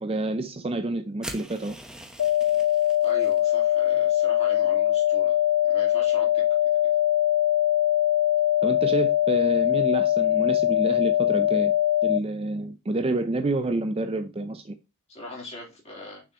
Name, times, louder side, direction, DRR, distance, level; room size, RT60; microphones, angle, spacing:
voice 1, 0.0-1.8 8.6-11.7 12.0-14.8, right 2 dB, 25° right, 0.5 m, -28 dB
sound 1, 1.2-3.4, right 1 dB, 5° right, 0.9 m, -42 dB
sound 2, 2.2-12.2, left 13 dB, 70° left, 0.3 m, -22 dB
voice 2, 3.0-5.4 5.7-6.4 15.1-16.2, left 2 dB, 30° left, 3.4 m, -41 dB
6.4 x 6.1 x 2.9 m
head